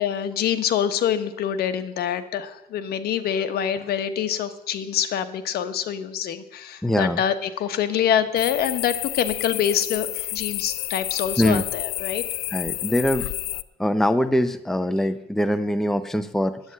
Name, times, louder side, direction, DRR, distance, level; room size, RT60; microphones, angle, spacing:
voice 1, 0.0-12.2, left 9 dB, 65° left, 10 dB, 1.2 m, -25 dB
voice 2, 6.8-7.2 11.4-11.6 12.5-13.3 13.8-16.6, equal, ahead, 11 dB, 0.7 m, -23 dB
sound 1, 8.4-13.6, left 18 dB, 85° left, 0.5 m, -30 dB
10.5 x 8.9 x 9.6 m, 0.89 s
cardioid pair, 110°, 17 cm